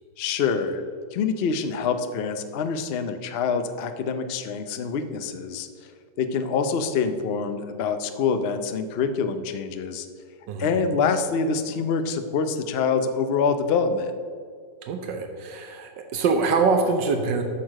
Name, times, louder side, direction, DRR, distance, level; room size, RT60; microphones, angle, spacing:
voice 1, 0.2-0.8 1.1-5.7 6.2-10.1 10.6-14.2, left 5 dB, 65° left, 8 dB, 0.6 m, -25 dB
voice 2, 14.8-17.4, right 4 dB, 80° right, 5 dB, 1.5 m, -24 dB
8.5 x 6.4 x 6.3 m, 2.1 s
omnidirectional pair, 1.9 m